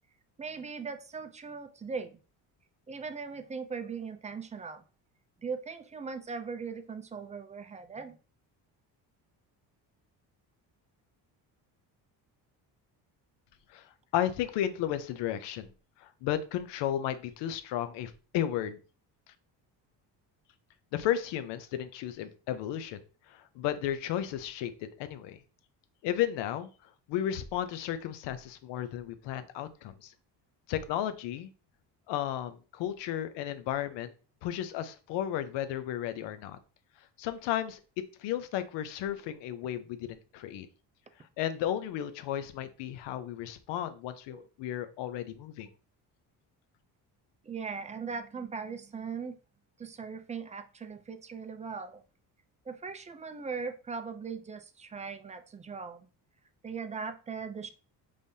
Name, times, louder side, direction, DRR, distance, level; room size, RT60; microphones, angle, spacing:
voice 1, 0.4-2.2 2.9-4.8 5.4-8.2 44.3-44.5 47.4-49.4 49.8-52.0 52.7-56.1 56.6-57.7, right 5 dB, 20° right, 8 dB, 0.4 m, -39 dB
voice 2, 13.7-15.7 16.0-18.8 20.9-23.0 23.3-24.7 25.0-25.4 26.0-30.1 30.7-31.5 32.1-34.1 34.4-36.6 37.2-37.8 38.2-40.7 41.4-45.7, left 11 dB, 85° left, 11 dB, 0.7 m, -34 dB
5.3 x 3.4 x 2.7 m, 0.35 s
cardioid pair, 120°, 41 cm